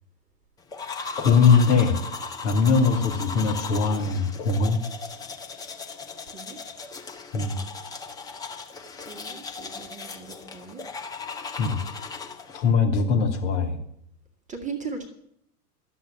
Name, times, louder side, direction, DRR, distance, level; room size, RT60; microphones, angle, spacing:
sound 1, 0.7-12.7, left 4 dB, 10° left, 0.9 m, -37 dB
voice 1, 1.2-2.0 2.4-4.8 7.3-7.6 11.6-11.8 12.5-13.8, left 5 dB, 45° left, 3 dB, 3.0 m, -21 dB
voice 2, 6.3-6.6 9.1-10.8 14.5-15.1, right 5 dB, 15° right, 4 dB, 1.6 m, -37 dB
12.5 x 7.7 x 10.0 m, 0.71 s
figure-of-eight pair, 105°, 47 cm